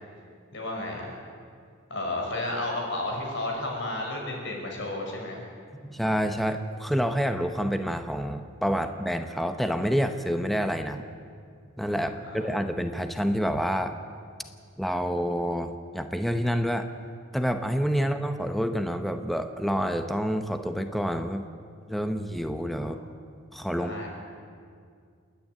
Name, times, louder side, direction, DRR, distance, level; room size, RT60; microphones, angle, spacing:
voice 1, 0.5-1.2 1.9-5.5 11.9-12.5 23.8-24.1, left 1 dB, 60° left, 0 dB, 5.3 m, -32 dB
voice 2, 5.8-11.0 11.8-14.0 14.8-16.9 17.3-21.5 21.9-23.0 23.5-23.9, equal, ahead, 7 dB, 0.8 m, -28 dB
28.5 x 10.0 x 9.5 m, 2.2 s
head